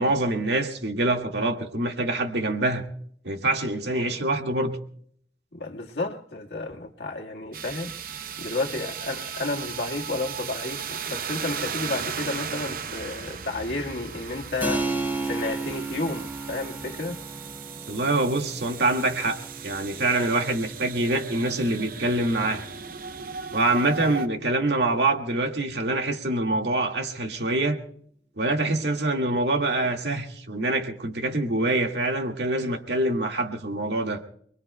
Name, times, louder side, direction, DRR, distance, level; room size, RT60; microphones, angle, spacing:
voice 1, 0.0-2.8 3.2-4.8 17.9-19.4 19.6-22.7 23.5-27.8 28.4-34.2, right 2 dB, 70° right, 1.9 m, -25 dB
voice 2, 5.5-8.0 8.4-14.9 15.3-17.2 24.1-24.2, left 2 dB, 65° left, 1.7 m, -32 dB
sound 1, 7.5-24.3, right 7 dB, 50° right, 0.7 m, -37 dB
Keyboard (musical), 14.6-24.8, right 3 dB, 10° right, 3.8 m, -36 dB
28.5 x 21.5 x 2.2 m
head